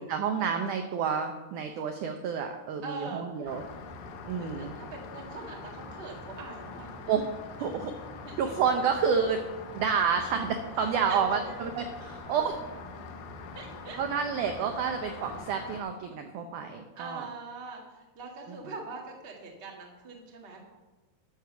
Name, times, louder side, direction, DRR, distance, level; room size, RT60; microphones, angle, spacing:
voice 1, 0.0-3.6 4.2-4.7 7.1-7.2 7.6-7.9 8.4-9.4 9.7-12.6 14.0-17.3 18.5-18.7, right 6 dB, 80° right, 6 dB, 1.8 m, -29 dB
voice 2, 2.8-3.6 4.4-7.0 8.2-8.5 11.1-11.2 11.4-11.7 13.5-14.0 17.0-20.6, right 3 dB, 30° right, 0 dB, 1.1 m, -43 dB
Rain, 3.5-15.8, left 3 dB, 80° left, 3.1 m, -43 dB
12.5 x 6.5 x 6.8 m, 1.2 s
omnidirectional pair, 4.6 m